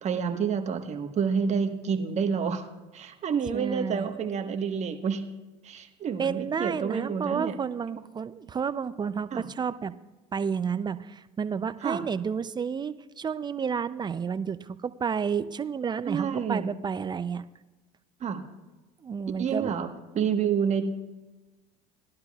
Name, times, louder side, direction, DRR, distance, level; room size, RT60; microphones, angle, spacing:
voice 1, 0.0-2.6 2.9-5.2 5.6-7.5 9.3-9.4 11.8-12.1 16.0-16.7 18.2-18.4 19.4-19.9 20.1-20.9, right 6 dB, 45° right, 5 dB, 1.4 m, -28 dB
voice 2, 3.5-4.1 6.2-9.9 10.3-17.4 19.0-19.8, right 6 dB, 25° right, 14 dB, 0.5 m, -31 dB
18.5 x 11.5 x 2.4 m, 1.1 s
supercardioid pair, 95°, 17 cm